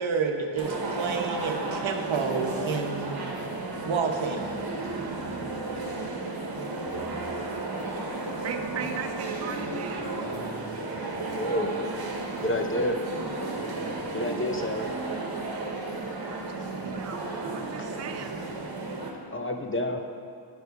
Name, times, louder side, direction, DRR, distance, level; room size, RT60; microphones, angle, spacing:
voice 1, 0.0-3.2 3.9-4.4, right 5 dB, 80° right, 3 dB, 0.9 m, -29 dB
sound 1, 0.6-19.1, right 3 dB, 50° right, 1.1 m, -33 dB
voice 2, 8.4-10.0 16.3-17.2 17.5-18.4, right 7 dB, 35° right, 5 dB, 0.5 m, -38 dB
voice 3, 11.3-11.8 12.4-13.0 14.1-14.9 19.3-20.0, left 1 dB, 25° left, 4 dB, 0.6 m, -28 dB
9.8 x 4.7 x 5.2 m, 2.3 s
wide cardioid pair, 115°, 47 cm